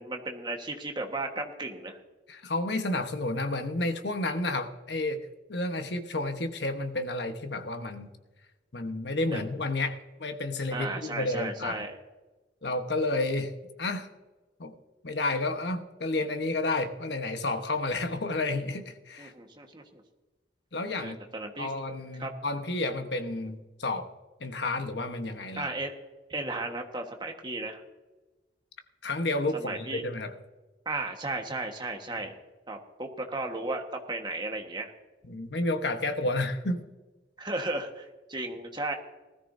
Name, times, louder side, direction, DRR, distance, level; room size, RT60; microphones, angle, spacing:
voice 1, 0.0-2.0 9.3-9.4 10.7-12.0 19.2-20.0 21.0-21.7 22.2-22.3 25.6-25.9 26.3-27.8 29.5-30.1 30.8-32.3 32.7-34.9 37.4-38.9, right 2 dB, 25° right, 3 dB, 1.4 m, -35 dB
voice 2, 2.3-5.2 5.5-8.1 8.7-11.8 12.6-14.1 14.6-14.7 15.0-19.3 20.7-21.2 21.6-24.1 24.4-25.7 29.0-30.3 35.2-36.9, left 2 dB, 70° left, 6 dB, 1.2 m, -31 dB
19.5 x 13.5 x 2.7 m, 1.2 s
head